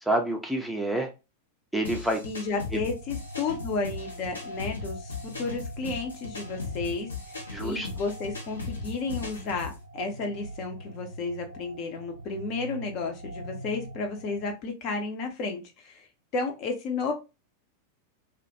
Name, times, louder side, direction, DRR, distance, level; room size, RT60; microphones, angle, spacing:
voice 1, 0.0-1.1 1.7-2.2 2.7-2.8 7.5-7.9, right 1 dB, ahead, 0.6 m, -28 dB
sound 1, 1.8-9.8, left 4 dB, 75° left, 0.6 m, -38 dB
voice 2, 2.2-16.1 16.3-17.1, left 4 dB, 40° left, 0.7 m, -32 dB
sound 2, 2.6-14.5, right 1 dB, 85° right, 0.4 m, -43 dB
2.3 x 2.1 x 2.7 m
figure-of-eight pair, 90°, 0 cm